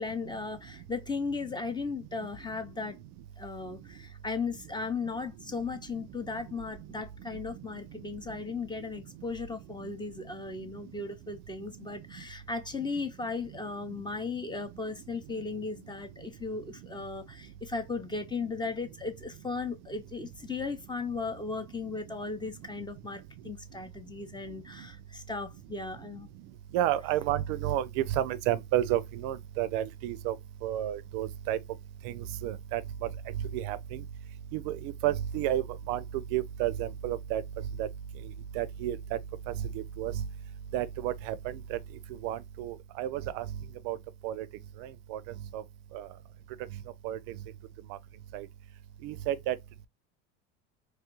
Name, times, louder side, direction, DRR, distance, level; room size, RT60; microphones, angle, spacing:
voice 1, 0.0-3.0 3.4-26.3, left 4 dB, 15° left, 0.6 m, -36 dB
voice 2, 26.7-30.3 30.6-31.6 32.0-32.8 33.5-34.0 34.5-36.0 36.3-37.4 37.8-37.9 38.6-39.0 39.7-40.1 40.7-41.8 42.2-43.4 43.9-44.0 44.2-44.5 45.1-45.2 45.5-45.6 45.9-46.1 47.0-47.2 48.3-48.5 49.0-49.6, right 12 dB, 70° right, 0.5 m, -31 dB
3.0 x 2.3 x 2.9 m
supercardioid pair, 110°, 35 cm